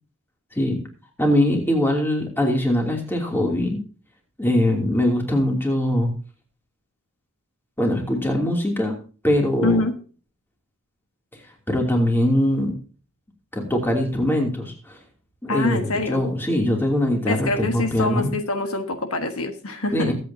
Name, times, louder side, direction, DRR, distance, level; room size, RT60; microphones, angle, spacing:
voice 1, 1.2-3.8 4.4-6.1 7.8-9.0 9.2-9.8 11.7-12.7 13.5-15.0 15.4-18.3 19.9-20.1, left 1 dB, 10° left, 1 dB, 2.9 m, -22 dB
voice 2, 9.6-9.9 15.5-16.2 17.2-20.1, left 2 dB, 65° left, 6 dB, 1.5 m, -25 dB
22.0 x 8.4 x 2.8 m, 0.38 s
head